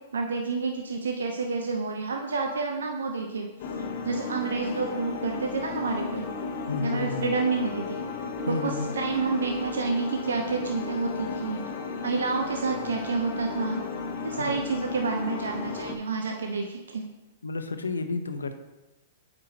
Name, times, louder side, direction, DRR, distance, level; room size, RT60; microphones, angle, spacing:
voice 1, 0.1-3.5 4.0-6.3 6.8-8.0 8.5-11.6 12.0-13.8 14.2-17.1, right 4 dB, 80° right, 2 dB, 0.7 m, -29 dB
sound 1, 3.6-16.0, left 4 dB, 55° left, 0.8 m, -34 dB
voice 2, 6.7-7.4 8.5-8.9 14.4-14.5 17.4-18.5, left 3 dB, 90° left, 8 dB, 0.7 m, -31 dB
8.3 x 4.9 x 2.9 m, 1.0 s
hypercardioid pair, 115°, 0 cm